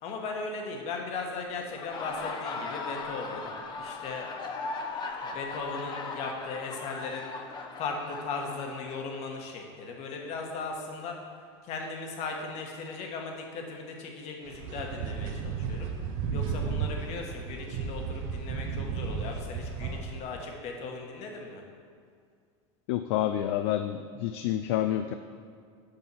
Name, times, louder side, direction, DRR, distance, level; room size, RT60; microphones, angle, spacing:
voice 1, 0.0-4.3 5.2-7.3 7.8-11.2 11.6-15.9 16.3-21.6, left 4 dB, 45° left, 2 dB, 1.4 m, -37 dB
Laughter, 1.6-9.2, left 4 dB, 30° left, 0.8 m, -38 dB
sound 1, 14.5-20.3, right 6 dB, 55° right, 0.9 m, -34 dB
voice 2, 22.9-25.1, left 12 dB, 65° left, 8 dB, 0.4 m, -28 dB
7.0 x 5.5 x 5.7 m, 2.2 s
supercardioid pair, 130°, 15 cm